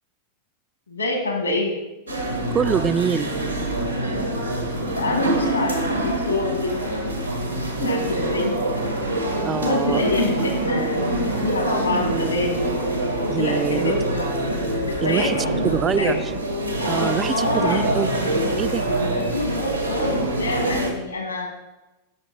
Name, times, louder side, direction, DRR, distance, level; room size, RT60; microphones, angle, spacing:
voice 1, 0.9-1.7 4.8-6.9 7.8-8.6 9.3-12.6 13.2-14.4 14.7-16.1 17.2-17.9 19.1-21.5, left 2 dB, 80° left, 2 dB, 1.9 m, -26 dB
sound 1, 2.1-20.9, right 1 dB, 90° right, 1.6 m, -25 dB
voice 2, 2.5-3.3 9.5-10.0 13.3-13.9 15.0-15.4 15.6-16.2 16.9-18.1 18.6-18.8, right 7 dB, 20° right, 15 dB, 0.3 m, -24 dB
12.5 x 6.6 x 4.0 m, 1.1 s
figure-of-eight pair, 90°, 0 cm